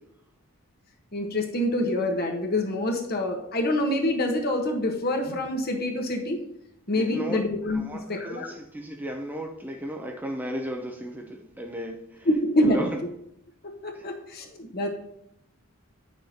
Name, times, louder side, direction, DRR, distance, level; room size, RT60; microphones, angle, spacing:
voice 1, 1.1-6.4 6.9-7.8 8.1-8.5 12.2-12.8 13.8-14.9, left 1 dB, 45° left, 3 dB, 1.2 m, -26 dB
voice 2, 6.9-7.4 7.7-12.3 12.6-13.0 13.9-14.1, equal, 10° right, 2 dB, 0.6 m, -35 dB
9.8 x 6.4 x 2.9 m, 0.79 s
head